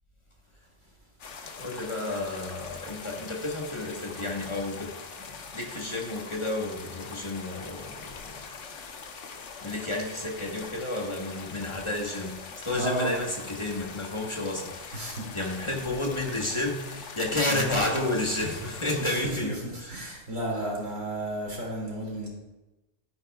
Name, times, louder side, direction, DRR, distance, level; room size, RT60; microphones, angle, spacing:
sound 1, 1.2-19.3, left 5 dB, 65° left, 1.2 m, -43 dB
voice 1, 1.6-4.9 5.2-8.4 9.6-20.1, left 2 dB, 25° left, 0 dB, 1.2 m, -31 dB
voice 2, 12.7-13.2 14.9-15.5 17.4-17.7 19.0-22.3, right 1 dB, 70° right, -4 dB, 3.2 m, -33 dB
12.0 x 9.1 x 2.4 m, 1.0 s
omnidirectional pair, 1.4 m